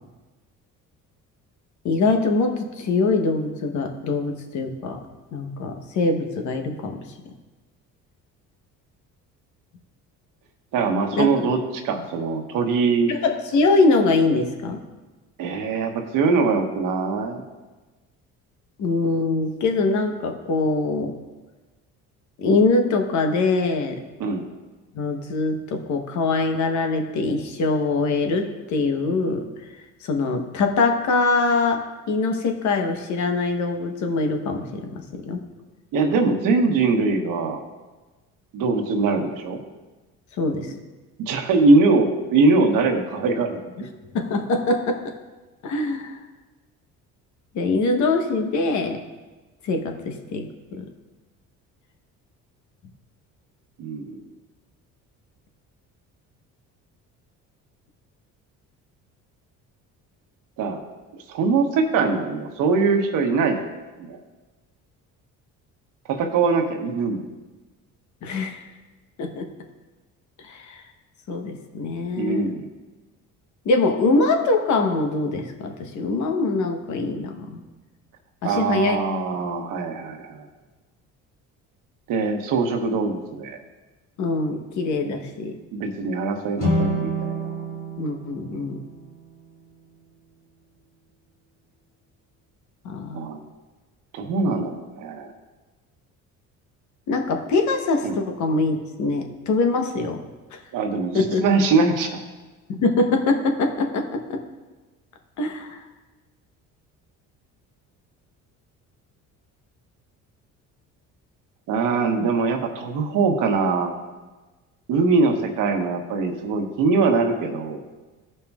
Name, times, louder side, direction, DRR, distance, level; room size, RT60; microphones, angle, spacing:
voice 1, 1.8-5.0 5.3-7.0 11.2-11.5 13.1-14.8 18.8-21.1 22.4-24.0 24.9-29.4 30.0-35.4 40.4-40.7 44.1-45.0 45.6-46.2 47.5-49.0 49.6-50.4 50.7-50.9 68.2-68.6 69.2-69.5 70.4-70.8 71.3-72.5 73.6-77.6 78.4-79.0 84.2-85.5 88.0-88.8 92.8-93.3 97.1-100.2 100.5-100.6 101.1-101.4 102.7-104.4 105.4-105.8, left 3 dB, 60° left, 5 dB, 1.0 m, -23 dB
voice 2, 10.7-13.1 15.4-17.4 24.2-24.4 35.9-37.6 38.5-39.6 41.2-43.6 53.8-54.2 60.6-60.8 61.1-63.6 64.0-64.2 66.1-67.2 72.2-72.7 78.4-80.5 82.1-83.6 85.7-87.5 93.1-93.4 94.1-95.3 98.0-98.2 100.7-102.2 111.7-113.9 114.9-117.8, right 4 dB, 75° right, 4 dB, 1.2 m, -22 dB
sound 1, 86.6-89.8, right 1 dB, 40° left, 1.8 m, -28 dB
15.0 x 5.5 x 2.4 m, 1.2 s
cardioid pair, 105°, 33 cm